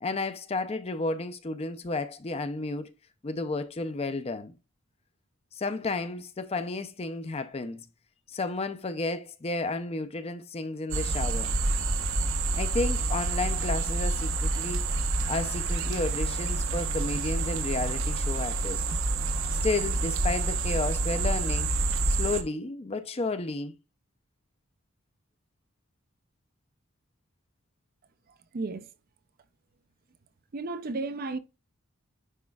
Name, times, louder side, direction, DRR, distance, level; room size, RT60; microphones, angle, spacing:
voice 1, 0.0-2.9 3.2-4.6 5.5-7.9 8.3-11.5 12.5-14.9 15.3-18.8 19.3-21.7 22.1-23.7, left 3 dB, 30° left, 0.5 m, -32 dB
sound 1, 10.9-22.4, right 3 dB, 70° right, 0.9 m, -28 dB
voice 2, 28.5-28.9 30.5-31.4, right 3 dB, 45° right, 0.5 m, -33 dB
10.0 x 4.3 x 2.3 m
head